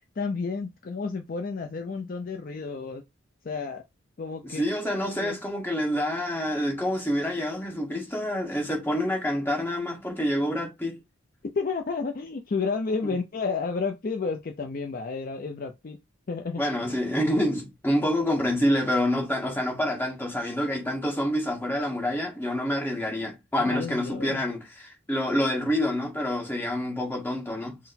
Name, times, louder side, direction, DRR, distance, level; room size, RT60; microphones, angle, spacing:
voice 1, 0.2-3.0 3.4-3.8 4.2-4.6 5.2-5.4 11.4-16.0 16.3-16.6 23.6-24.4, left 4 dB, 45° left, 0.4 m, -31 dB
voice 2, 4.4-11.0 13.0-13.1 16.6-27.8, equal, 10° left, 1.3 m, -27 dB
4.1 x 2.0 x 4.1 m
head